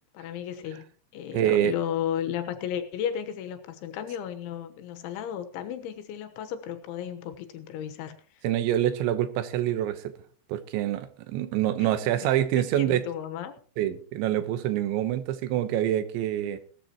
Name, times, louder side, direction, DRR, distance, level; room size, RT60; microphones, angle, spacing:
voice 1, 0.2-0.9 1.1-8.2 11.8-12.1 12.5-13.5, left 9 dB, 80° left, 8 dB, 3.6 m, -34 dB
voice 2, 1.3-1.7 8.4-10.1 10.5-13.0 13.8-16.6, right 12 dB, 80° right, 11 dB, 3.2 m, -26 dB
18.5 x 13.5 x 2.9 m, 0.42 s
omnidirectional pair, 5.4 m